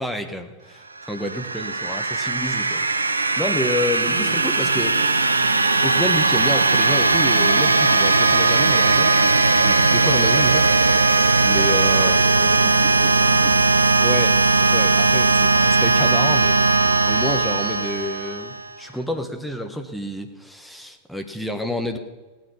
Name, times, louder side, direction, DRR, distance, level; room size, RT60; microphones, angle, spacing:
voice 1, 0.0-5.0 5.8-9.1 9.5-10.7 11.4-12.2 14.0-16.6 17.0-22.0, left 1 dB, ahead, 5 dB, 1.3 m, -29 dB
sound 1, 1.1-18.7, right 3 dB, 80° right, 0.6 m, -18 dB
voice 2, 4.0-6.0 12.0-13.7, right 5 dB, 40° right, 3 dB, 2.0 m, -38 dB
17.0 x 9.5 x 5.6 m, 1.3 s
figure-of-eight pair, 90°, 0 cm